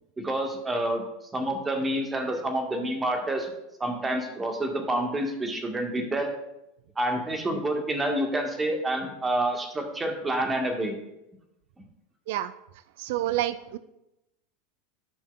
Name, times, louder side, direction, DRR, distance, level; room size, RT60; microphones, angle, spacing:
voice 1, 0.2-1.0 1.3-3.5 3.8-6.3 7.0-10.9, right 1 dB, 15° right, 4 dB, 1.5 m, -28 dB
voice 2, 13.0-13.8, right 13 dB, 55° right, 14 dB, 0.3 m, -28 dB
14.0 x 6.1 x 2.4 m, 0.88 s
figure-of-eight pair, 80°, 0 cm